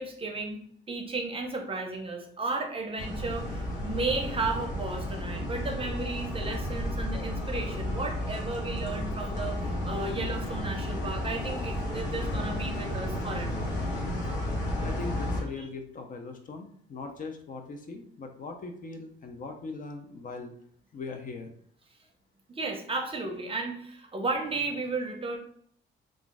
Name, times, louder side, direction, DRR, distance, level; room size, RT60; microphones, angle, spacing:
voice 1, 0.0-13.7 15.6-15.7 22.5-25.4, right 3 dB, 30° right, 3 dB, 0.6 m, -34 dB
sound 1, 3.0-15.4, left 1 dB, 65° left, 1.1 m, -32 dB
voice 2, 14.8-20.5 20.9-21.5, left 3 dB, 45° left, 5 dB, 0.5 m, -40 dB
2.4 x 2.2 x 3.9 m, 0.64 s
cardioid pair, 90°, 20 cm